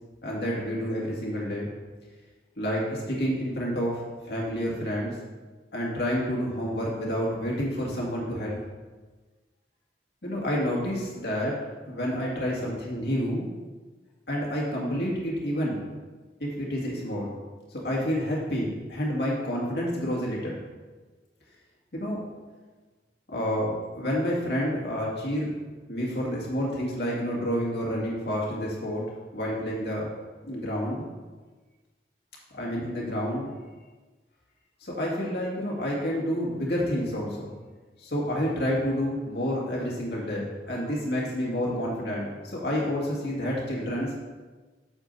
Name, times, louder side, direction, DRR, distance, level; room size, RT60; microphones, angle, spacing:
voice 1, 0.2-1.7 2.6-5.2 5.7-8.6 10.2-11.6 11.9-13.5 14.3-15.8 16.4-17.3 17.7-20.6 21.9-22.2 23.3-25.5 25.9-29.0 29.3-30.1 30.4-31.0 32.5-33.5 34.8-37.5 38.0-44.1, equal, 70° left, -4 dB, 2.1 m, -29 dB
8.4 x 7.3 x 2.7 m, 1.3 s
head